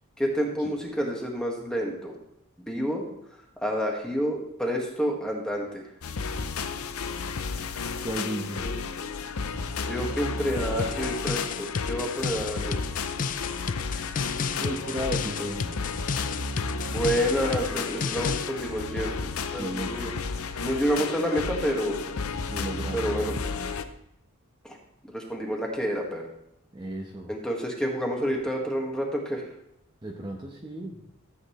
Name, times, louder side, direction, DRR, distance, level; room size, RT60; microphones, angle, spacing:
voice 1, 0.2-2.2 2.6-3.0 3.6-5.8 8.6-8.7 9.9-12.8 15.4-15.5 16.9-19.1 19.5-20.1 20.6-22.0 22.9-23.4 24.6-24.8 25.1-26.2 27.3-29.5, equal, 5° left, -1 dB, 1.8 m, -29 dB
sound 1, 6.0-23.8, left 4 dB, 75° left, 0.7 m, -32 dB
voice 2, 8.0-8.7 14.5-15.8 19.6-19.9 22.5-23.0 26.7-27.3 30.0-31.0, equal, 20° right, -1 dB, 1.0 m, -34 dB
sound 2, 10.8-18.5, left 6 dB, 40° left, 0.4 m, -32 dB
13.5 x 8.0 x 3.2 m, 0.79 s
head